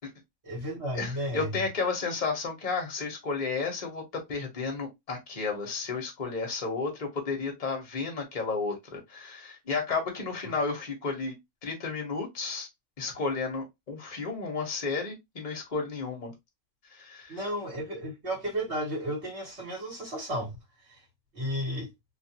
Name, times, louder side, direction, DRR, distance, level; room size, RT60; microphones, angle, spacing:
voice 1, 0.4-1.6 17.3-20.5 20.9-21.0 21.3-21.9, equal, 60° right, 1.6 m, -33 dB
voice 2, 0.9-4.0 4.3-11.3 11.6-12.7 13.0-16.3 16.9-17.4, left 4 dB, 40° left, 1.0 m, -32 dB
2.7 x 2.5 x 2.8 m
omnidirectional pair, 1.3 m